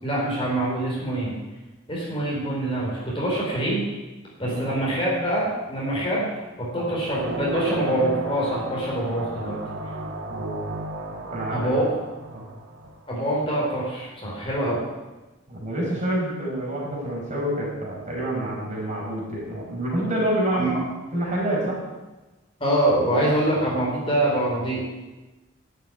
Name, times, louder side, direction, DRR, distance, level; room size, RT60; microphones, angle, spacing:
voice 1, 0.0-1.3 1.9-3.8 4.4-6.3 6.6-9.6 11.5-11.9 13.1-14.8 20.5-20.8 22.6-24.8, right 1 dB, 25° left, -5 dB, 4.8 m, -25 dB
voice 2, 4.4-4.8 6.8-6.9 10.3-10.7 11.3-11.8 12.3-12.4 15.5-20.7 21.1-21.8, right 1 dB, 35° right, -4 dB, 5.0 m, -27 dB
sound 1, 7.1-13.2, right 1 dB, 65° right, 1.5 m, -33 dB
11.5 x 7.8 x 9.6 m, 1.1 s
head